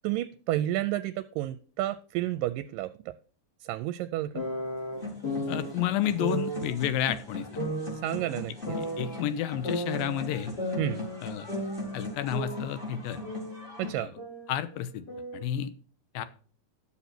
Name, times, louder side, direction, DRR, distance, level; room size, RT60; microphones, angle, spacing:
voice 1, 0.0-2.9 3.6-4.4 8.0-8.8 10.8-11.0 13.8-14.1, right 14 dB, 80° right, 11 dB, 2.1 m, -31 dB
sound 1, 4.3-5.7 6.2-6.7 7.6-9.2 9.6-11.2 11.5-13.6 13.9-15.4, equal, 30° left, 3.0 m, -35 dB
sound 2, 5.0-13.9, left 1 dB, 15° left, 3.8 m, -40 dB
voice 2, 5.5-7.5 8.8-10.5 11.2-11.5 11.9-13.2 14.0-14.1 14.5-15.1 15.3-15.7 16.1-16.3, left 11 dB, 85° left, 13 dB, 2.5 m, -30 dB
11.5 x 7.1 x 4.3 m, 0.41 s
omnidirectional pair, 4.1 m